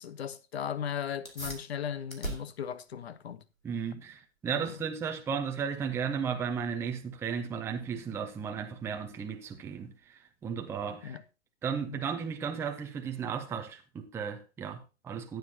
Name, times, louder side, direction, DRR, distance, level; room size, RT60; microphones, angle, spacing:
voice 1, 0.0-3.4 4.6-4.7 11.0-11.2 11.9-12.0, left 8 dB, 50° left, 1.0 m, -37 dB
sound 1, 1.2-11.2, right 1 dB, 90° left, 2.7 m, -47 dB
voice 2, 3.6-11.2 11.6-15.4, right 6 dB, 5° right, 0.7 m, -35 dB
14.0 x 9.3 x 2.8 m
figure-of-eight pair, 115°, 40 cm